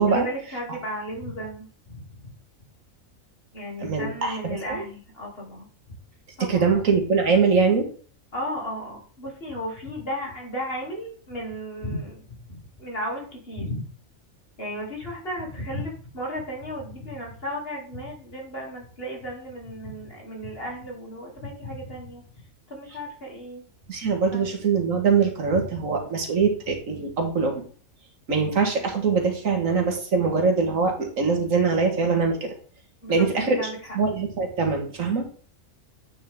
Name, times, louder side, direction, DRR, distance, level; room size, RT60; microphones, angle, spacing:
voice 1, 0.1-2.3 3.5-5.7 6.4-6.6 8.3-13.8 14.6-22.2 22.7-23.6 24.3-24.5 33.0-33.8, equal, 45° left, -2 dB, 2.8 m, -34 dB
voice 2, 3.8-4.8 6.5-7.9 23.9-27.6 28.3-32.5 33.1-33.6 33.9-35.3, right 5 dB, 75° right, 3 dB, 1.9 m, -23 dB
9.3 x 4.9 x 3.5 m, 0.43 s
omnidirectional pair, 1.4 m